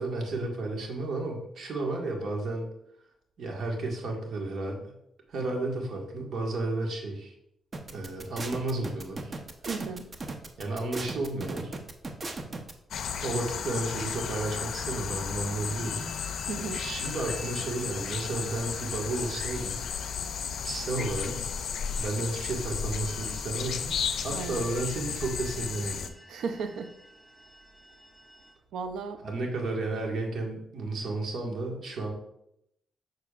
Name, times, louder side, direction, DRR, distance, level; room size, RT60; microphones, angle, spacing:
voice 1, 0.0-2.7 3.4-4.9 5.3-7.3 7.9-9.4 10.6-11.7 13.2-16.1 16.7-19.8 20.6-21.4 22.0-26.1 29.2-32.1, right 2 dB, 70° right, 1 dB, 1.7 m, -32 dB
sound 1, 7.7-12.7, right 2 dB, 40° right, 0.8 m, -37 dB
voice 2, 9.6-10.1 16.5-16.8 24.3-24.7 26.3-26.9 28.7-29.2, right 5 dB, 85° right, 9 dB, 0.5 m, -35 dB
sound 2, 12.9-26.1, left 7 dB, 75° left, 0.5 m, -34 dB
sound 3, 15.8-28.5, equal, 5° right, 2.1 m, -51 dB
6.8 x 6.5 x 2.4 m, 0.77 s
cardioid pair, 70°, 0 cm